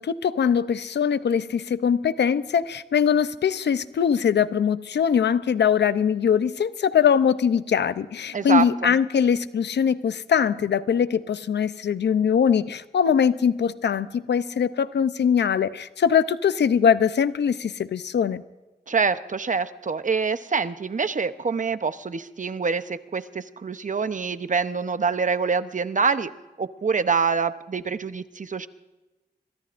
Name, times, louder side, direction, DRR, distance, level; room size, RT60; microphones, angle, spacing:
voice 1, 0.0-18.4, left 7 dB, 85° left, 13 dB, 0.6 m, -22 dB
voice 2, 8.3-9.0 18.9-26.3 26.6-28.7, right 5 dB, 45° right, 11 dB, 0.9 m, -25 dB
25.0 x 22.5 x 2.6 m, 1.1 s
cardioid pair, 60°, 17 cm